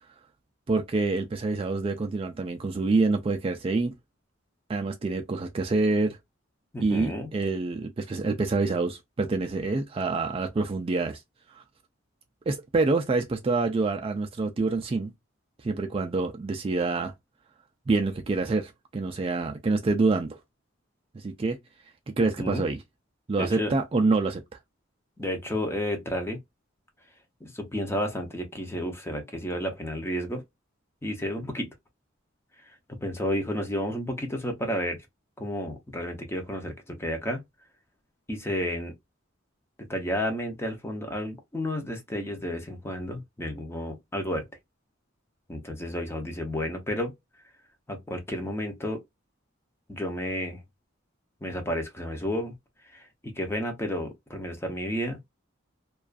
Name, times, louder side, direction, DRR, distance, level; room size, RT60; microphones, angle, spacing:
voice 1, 0.7-3.9 4.7-6.2 6.8-11.2 11.5-11.6 12.5-15.1 15.6-17.1 17.9-20.4 21.1-21.6 22.2-22.8 23.3-24.4, right 3 dB, 30° right, 0.3 m, -26 dB
voice 2, 6.7-7.3 22.4-22.6 23.4-23.7 25.2-26.4 27.4-30.4 31.0-31.7 33.0-35.0 35.4-37.4 38.3-38.9 39.9-44.4 45.5-47.1 47.9-49.0 49.9-50.6 51.4-52.5 52.9-53.0 53.4-55.2, equal, 15° left, 0.6 m, -31 dB
2.4 x 2.3 x 2.3 m
head